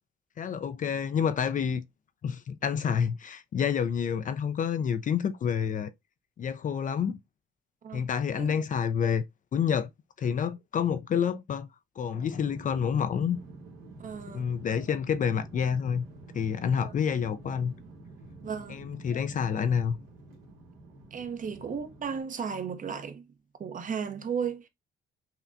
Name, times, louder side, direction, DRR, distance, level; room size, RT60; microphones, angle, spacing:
voice 1, 0.4-1.8 2.2-5.9 6.4-7.2 7.9-9.2 9.5-9.9 10.2-11.7 12.0-13.4 14.3-16.1 16.3-17.7 18.7-20.0, left 7 dB, 40° left, 0.4 m, -28 dB
sound 1, 12.3-22.2, right 2 dB, 90° right, 1.3 m, -48 dB
voice 2, 14.0-14.5 16.7-17.0 18.4-18.8 21.1-23.3 23.6-24.7, right 6 dB, 40° right, 0.6 m, -35 dB
5.7 x 2.1 x 2.4 m
cardioid pair, 90°, 20 cm